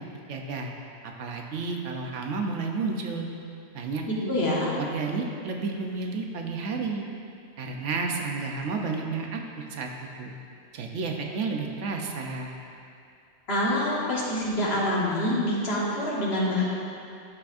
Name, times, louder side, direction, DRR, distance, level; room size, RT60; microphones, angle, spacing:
voice 1, 0.3-0.7 1.0-3.3 3.7-4.3 4.7-7.0 7.6-9.9 10.2-10.3 10.7-12.5, right 4 dB, 80° right, 2 dB, 1.1 m, -31 dB
voice 2, 4.1-4.7 13.5-16.6, left 1 dB, 55° left, -6 dB, 1.7 m, -26 dB
12.5 x 5.9 x 2.6 m, 2.5 s
omnidirectional pair, 1.2 m